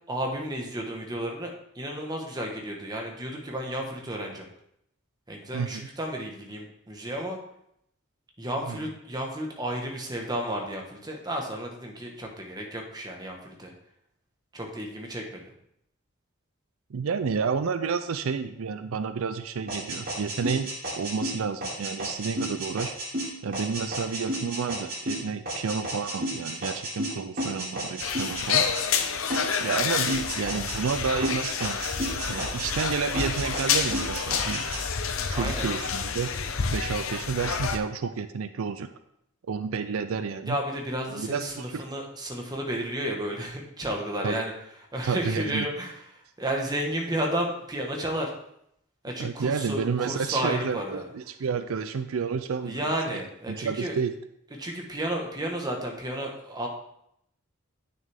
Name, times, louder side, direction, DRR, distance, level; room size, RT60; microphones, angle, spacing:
voice 1, 0.1-4.5 5.3-7.4 8.4-13.7 14.5-15.5 35.3-35.7 40.4-44.5 44.9-48.3 49.0-51.1 52.6-54.0 54.6-56.7, right 1 dB, 20° right, 1 dB, 1.3 m, -32 dB
voice 2, 16.9-20.7 21.0-22.9 23.4-28.7 29.6-31.8 32.3-34.7 35.3-38.9 39.5-40.6 41.1-41.8 44.2-44.4 45.0-45.7 49.2-52.8 53.5-54.1, right 5 dB, 80° right, 10 dB, 0.5 m, -30 dB
sound 1, 19.7-29.0 29.3-31.0 31.2-32.9 33.1-34.8, right 1 dB, 45° right, 3.3 m, -32 dB
sound 2, 28.0-37.8, left 6 dB, 75° left, 0.7 m, -29 dB
8.8 x 6.6 x 3.5 m, 0.76 s
head